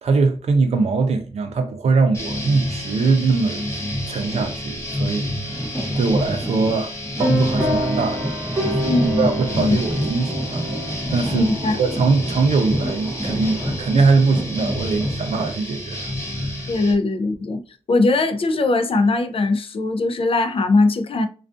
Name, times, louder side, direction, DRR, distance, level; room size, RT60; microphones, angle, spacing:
voice 1, 0.0-3.6 4.1-5.6 6.0-6.9 7.2-8.3 8.6-10.6 11.1-11.5 11.8-16.5, right 4 dB, 70° right, 0.4 m, -21 dB
sound 1, 2.1-16.9, left 1 dB, 20° left, 1.1 m, -29 dB
sound 2, 4.1-4.9 5.5-15.5, right 1 dB, 5° right, 0.6 m, -31 dB
sound 3, 7.2-15.3, equal, 35° right, 0.9 m, -29 dB
voice 2, 8.8-9.8 11.3-11.8 16.7-17.6 17.9-21.3, left 2 dB, 55° left, 0.4 m, -20 dB
2.4 x 2.3 x 2.4 m
cardioid pair, 65°, 11 cm